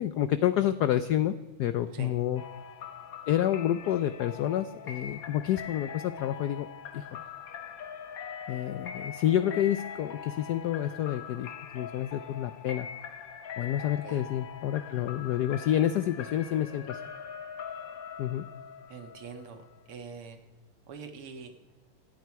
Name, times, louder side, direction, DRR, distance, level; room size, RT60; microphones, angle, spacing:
voice 1, 0.0-2.4 3.3-6.7 6.9-7.2 8.5-12.9 13.6-17.0 18.2-18.5, left 11 dB, 90° left, 12 dB, 0.8 m, -29 dB
sound 1, 2.3-19.9, left 7 dB, 55° left, 1.1 m, -43 dB
voice 2, 13.8-14.2 18.9-19.6 19.9-20.4 20.9-21.5, right 5 dB, 80° right, 6 dB, 2.4 m, -44 dB
26.5 x 9.2 x 4.6 m, 1.2 s
omnidirectional pair, 2.4 m